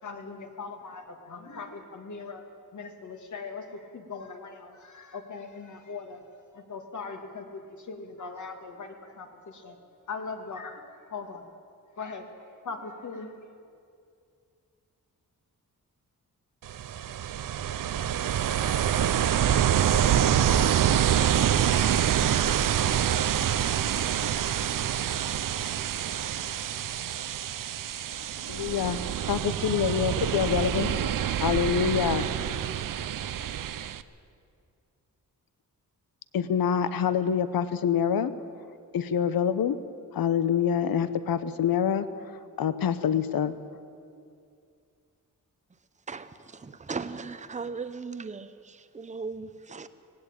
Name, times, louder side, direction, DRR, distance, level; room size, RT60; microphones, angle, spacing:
voice 1, 0.0-2.5 2.7-6.2 6.5-9.8 10.1-11.4 12.0-13.3, left 4 dB, 55° left, 5 dB, 2.2 m, -40 dB
Ocean, 16.6-34.0, right 10 dB, 65° right, 0.7 m, -26 dB
voice 2, 28.5-29.0 29.3-30.9 31.4-32.3 36.3-38.3 38.9-39.8 40.1-42.1 42.6-43.5, left 8 dB, 85° left, 13 dB, 0.9 m, -26 dB
voice 3, 46.1-49.9, right 4 dB, 20° right, 12 dB, 0.7 m, -38 dB
19.5 x 16.5 x 8.9 m, 2.4 s
wide cardioid pair, 145°, 34 cm